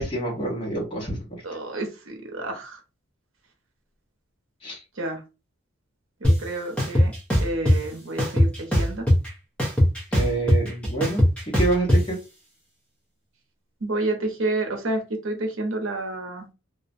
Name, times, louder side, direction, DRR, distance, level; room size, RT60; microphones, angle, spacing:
voice 1, 0.0-1.4 4.6-4.8 10.1-12.2, right 2 dB, 25° left, -3 dB, 1.0 m, -27 dB
voice 2, 1.4-2.8 5.0-5.2 6.2-7.1 7.4-8.5 8.8-9.1 13.8-16.5, right 2 dB, 75° right, 3 dB, 0.7 m, -29 dB
sound 1, 6.2-6.3 6.8-7.8 8.2-9.3 9.6-12.0, equal, 5° left, 0.5 m, -19 dB
2.4 x 2.1 x 2.5 m, 0.28 s
head